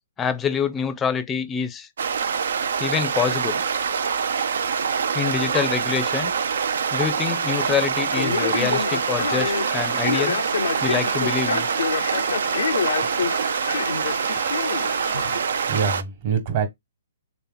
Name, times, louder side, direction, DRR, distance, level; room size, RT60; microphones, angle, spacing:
voice 1, 0.2-1.9 2.8-3.6 5.1-6.3 6.9-10.4 10.8-11.7, left 7 dB, 15° left, 0.5 m, -26 dB
sound 1, 2.0-16.0, right 6 dB, 70° right, 0.4 m, -25 dB
Male speech man speaking, 8.1-15.4, left 6 dB, 75° left, 0.5 m, -28 dB
voice 2, 15.3-16.7, right 6 dB, 45° right, 1.3 m, -26 dB
3.4 x 2.9 x 3.8 m
hypercardioid pair, 140°, 0 cm